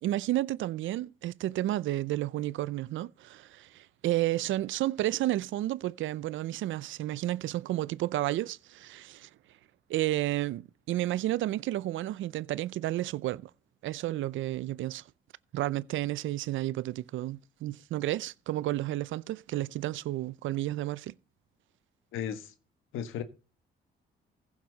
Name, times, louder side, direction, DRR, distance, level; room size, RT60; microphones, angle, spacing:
voice 1, 0.0-9.3 9.9-13.5 13.8-15.0 15.5-21.1, right 15 dB, 80° right, 0.6 m, -31 dB
voice 2, 22.1-22.5 22.9-23.2, left 9 dB, 85° left, 1.5 m, -35 dB
15.5 x 7.5 x 4.0 m
cardioid pair, 90°, 20 cm